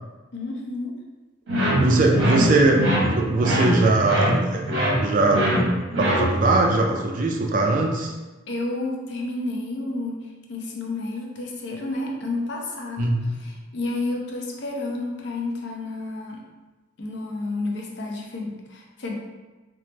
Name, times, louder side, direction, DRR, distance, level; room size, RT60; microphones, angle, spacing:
voice 1, 0.3-1.0 8.5-16.4 17.0-19.1, left 2 dB, 60° left, 0 dB, 0.5 m, -31 dB
sound 1, 1.5-6.6, equal, 75° right, 0.9 m, -23 dB
voice 2, 1.8-2.8 3.2-5.4 6.0-8.1 13.0-13.3, right 2 dB, 45° right, 1 dB, 0.3 m, -21 dB
3.2 x 2.0 x 2.9 m, 1.2 s
head